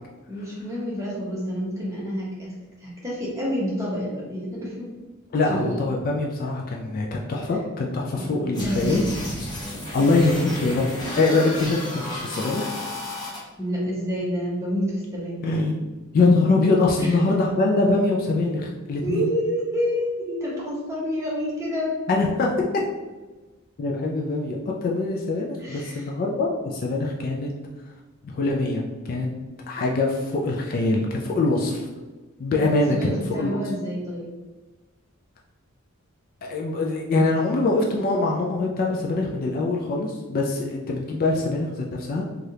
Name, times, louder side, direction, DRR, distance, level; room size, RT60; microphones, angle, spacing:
voice 1, 0.3-2.5 2.8-4.9 5.4-5.9 8.2-9.2 13.6-15.7 17.0-17.2 19.0-22.0 25.6-26.1 32.5-32.6 32.9-34.3, equal, 15° right, -5 dB, 0.8 m, -28 dB
voice 2, 5.3-9.0 9.9-10.9 11.2-12.7 15.4-15.8 16.1-19.3 22.1-22.5 23.8-27.5 28.2-29.3 29.7-31.9 32.4-33.6 36.4-42.2, left 3 dB, 40° left, -1 dB, 0.3 m, -23 dB
sound 1, 8.5-13.4, left 1 dB, 20° left, 0.9 m, -33 dB
3.3 x 2.4 x 2.7 m, 1.2 s
head